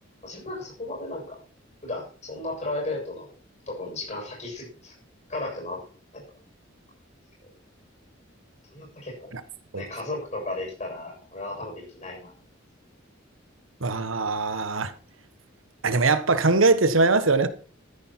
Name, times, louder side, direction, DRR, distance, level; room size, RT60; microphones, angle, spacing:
voice 1, 0.2-1.4 1.8-3.3 3.7-4.9 5.3-5.8 6.1-6.2 8.7-9.4 9.7-12.3, left 2 dB, 35° left, 7.4 m, -34 dB
voice 2, 13.8-14.9 15.8-17.5, right 3 dB, 80° right, 1.3 m, -21 dB
13.5 x 10.5 x 4.6 m
head